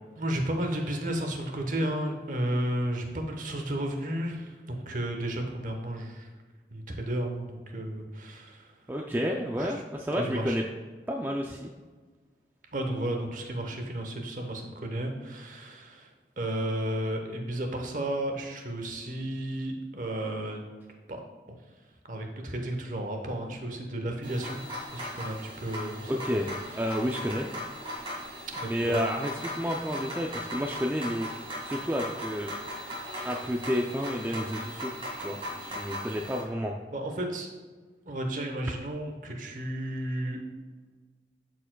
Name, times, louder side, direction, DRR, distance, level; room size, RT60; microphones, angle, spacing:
voice 1, 0.2-6.3 6.7-8.6 9.6-9.7 10.2-10.6 12.7-16.1 16.4-20.6 21.1-21.2 22.1-24.6 24.9-26.1 28.5-29.0 36.1-36.2 36.9-37.5 38.1-40.4, right 1 dB, 45° right, 3 dB, 0.9 m, -33 dB
voice 2, 8.9-10.6 11.1-11.7 26.1-27.5 28.7-32.5 33.2-34.9 35.2-36.7, equal, 10° right, 1 dB, 0.3 m, -31 dB
sound 1, 24.2-36.4, equal, 30° right, 1.9 m, -38 dB
11.5 x 4.5 x 2.2 m, 1.4 s
head